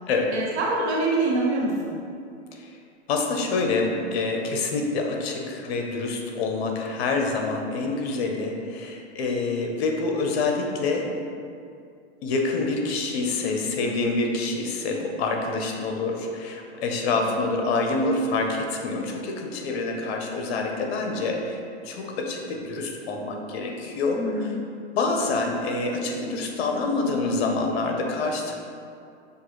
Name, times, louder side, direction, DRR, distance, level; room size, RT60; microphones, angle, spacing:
voice 1, 0.3-2.0 17.1-17.2 24.1-24.6, right 2 dB, 70° right, -3 dB, 1.2 m, -25 dB
voice 2, 3.1-11.1 12.2-21.6 21.8-24.2 25.0-28.5, left 3 dB, 65° left, 2 dB, 0.8 m, -26 dB
6.5 x 2.5 x 3.1 m, 2.4 s
hypercardioid pair, 135°, 34 cm